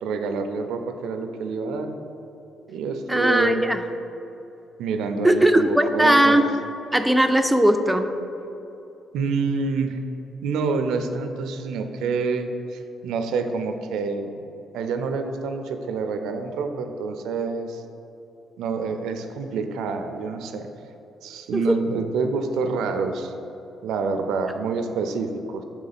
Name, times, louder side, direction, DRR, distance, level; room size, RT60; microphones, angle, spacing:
voice 1, 0.0-1.9 2.7-3.7 4.8-6.4 9.1-10.0 10.4-14.3 14.7-17.8 18.6-20.7 21.2-23.3 23.8-25.6, right 4 dB, 85° right, 7 dB, 0.4 m, -27 dB
voice 2, 3.1-3.8 5.2-6.5 6.9-8.1 21.5-21.8, right 1 dB, 5° right, 7 dB, 0.3 m, -18 dB
6.0 x 3.8 x 4.0 m, 3.0 s
cardioid pair, 105°, 0 cm